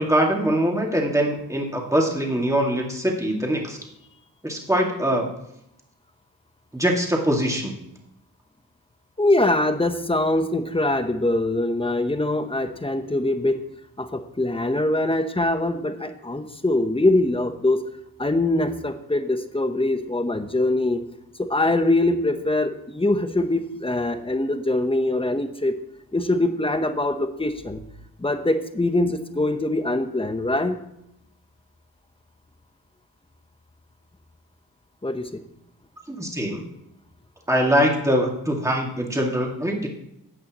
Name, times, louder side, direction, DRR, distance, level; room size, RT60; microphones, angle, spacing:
voice 1, 0.0-3.8 4.4-5.3 6.7-7.7 36.1-36.6 37.5-39.9, equal, 10° right, -1 dB, 2.2 m, -23 dB
voice 2, 9.2-13.6 14.0-17.9 18.2-21.0 21.4-25.8 26.1-27.8 28.2-30.8 35.0-35.3, left 2 dB, 15° left, 8 dB, 0.9 m, -23 dB
13.5 x 8.5 x 3.0 m, 0.81 s
cardioid pair, 75°, 37 cm